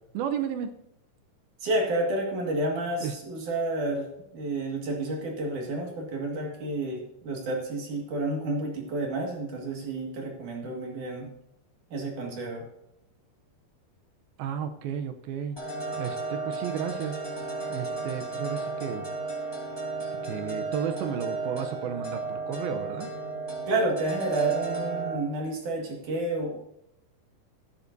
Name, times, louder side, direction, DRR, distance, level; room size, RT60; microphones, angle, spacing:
voice 1, 0.1-0.7 3.0-3.1 14.4-15.6 16.0-17.2 17.7-19.1 20.2-23.1, right 8 dB, 75° right, 8 dB, 2.4 m, -33 dB
voice 2, 1.6-11.3 11.9-12.6 23.7-26.6, right 2 dB, 55° right, 0 dB, 3.1 m, -30 dB
sound 1, 15.6-25.2, right 3 dB, 5° left, 2.6 m, -34 dB
14.0 x 12.0 x 2.7 m, 0.80 s
omnidirectional pair, 4.7 m